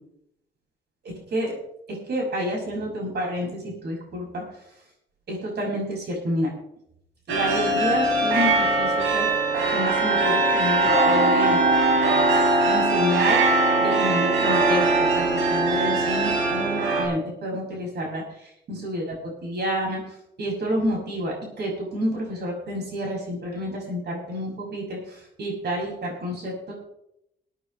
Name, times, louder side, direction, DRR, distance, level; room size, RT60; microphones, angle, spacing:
voice 1, 1.0-1.6 1.9-4.6 5.3-6.5 7.3-9.3 9.6-11.6 12.6-13.4 13.8-26.7, equal, 55° right, -1 dB, 6.3 m, -29 dB
sound 1, 7.3-17.1, right 2 dB, 90° right, 3.6 m, -21 dB
22.5 x 9.2 x 3.3 m, 0.78 s
cardioid pair, 90°, 20 cm